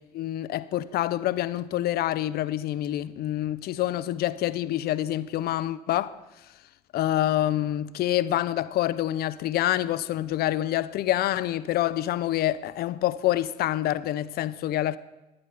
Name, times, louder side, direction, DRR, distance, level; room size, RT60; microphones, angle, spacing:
voice 1, 0.1-6.2 6.9-15.0, left 13 dB, 50° left, 0.5 m, -27 dB
11.5 x 10.5 x 4.3 m
figure-of-eight pair, 50°, 21 cm